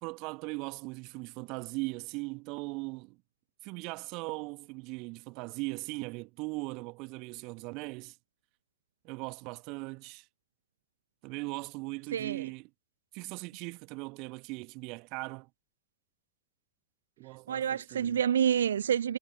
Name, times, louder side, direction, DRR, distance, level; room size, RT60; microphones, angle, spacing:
voice 1, 0.0-3.2 3.6-8.2 9.0-10.3 11.2-12.7 13.1-15.5 17.2-18.2, right 27 dB, 40° right, 1.7 m, -39 dB
voice 2, 12.1-12.5 17.5-19.2, right 9 dB, 65° right, 1.4 m, -28 dB
figure-of-eight pair, 90°, 0 cm